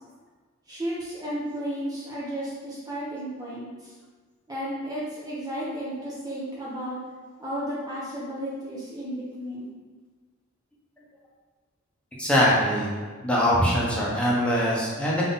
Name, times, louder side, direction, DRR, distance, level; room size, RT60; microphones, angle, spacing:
voice 1, 0.7-3.9 4.5-7.0 7.4-9.7, equal, 20° right, -7 dB, 0.7 m, -33 dB
voice 2, 12.2-12.9 13.2-15.2, equal, 5° left, -6 dB, 0.9 m, -22 dB
3.8 x 2.8 x 3.9 m, 1.4 s
head